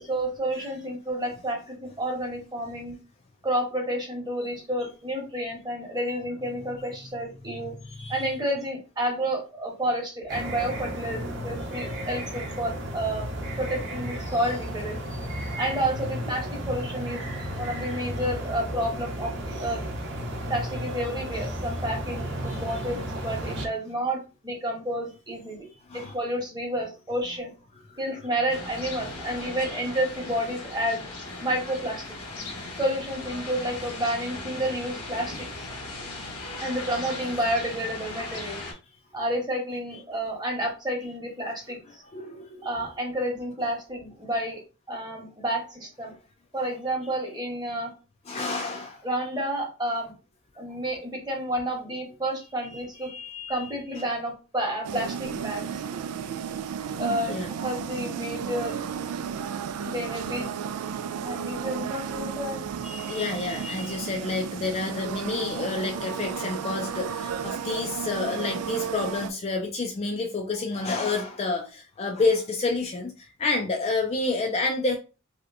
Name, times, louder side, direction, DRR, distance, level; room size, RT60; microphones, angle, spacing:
voice 1, 0.1-3.0 3.4-7.7 8.1-13.3 13.6-15.0 15.5-19.8 20.5-24.2 24.4-25.7 25.9-27.5 28.0-31.0 31.4-32.0 32.8-35.7 36.6-38.6 39.1-42.0 42.6-44.6 44.9-46.1 46.5-47.9 49.0-50.1 50.6-53.1 53.5-55.8 57.0-58.8 59.8-60.5 61.2-62.6, right 1 dB, 20° right, 0 dB, 1.0 m, -30 dB
voice 2, 7.8-8.3 14.2-14.4 15.4-15.6 17.4-17.5 22.5-22.6 25.9-26.2 27.9-28.0 36.2-36.4 42.1-42.7 48.3-49.0 52.7-53.7 57.3-57.5 62.8-75.0, left 3 dB, 30° left, 2 dB, 0.4 m, -29 dB
sound 1, 10.3-23.7, equal, 55° right, 0.8 m, -33 dB
sound 2, 28.5-38.7, left 2 dB, 85° left, 1.2 m, -38 dB
sound 3, 54.8-69.3, right 7 dB, 90° right, 0.3 m, -33 dB
3.2 x 2.9 x 2.5 m, 0.32 s
head